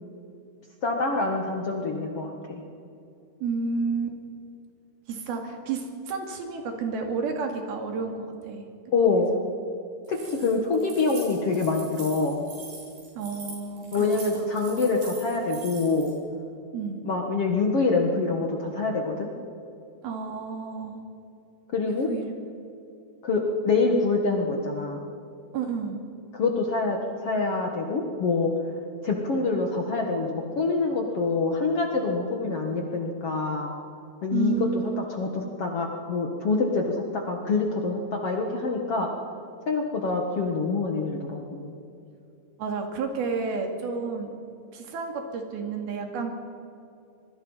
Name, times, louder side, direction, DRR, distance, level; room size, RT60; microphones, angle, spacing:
voice 1, 0.8-2.6 8.9-9.4 10.1-12.5 13.9-16.1 17.0-19.3 21.7-22.1 23.2-25.0 26.3-28.5 29.0-33.7 34.2-34.6 35.1-39.1 39.7-41.7, left 3 dB, 50° left, 2 dB, 1.9 m, -26 dB
voice 2, 3.4-4.2 5.1-8.7 13.2-14.1 16.7-17.0 20.0-21.0 22.1-22.4 25.5-26.0 34.3-35.0 42.6-44.3 44.7-46.3, right 5 dB, 70° right, 3 dB, 4.1 m, -31 dB
Keys jangling, 10.0-16.1, right 3 dB, 90° right, 8.5 m, -43 dB
26.0 x 21.5 x 5.6 m, 2.7 s
omnidirectional pair, 4.6 m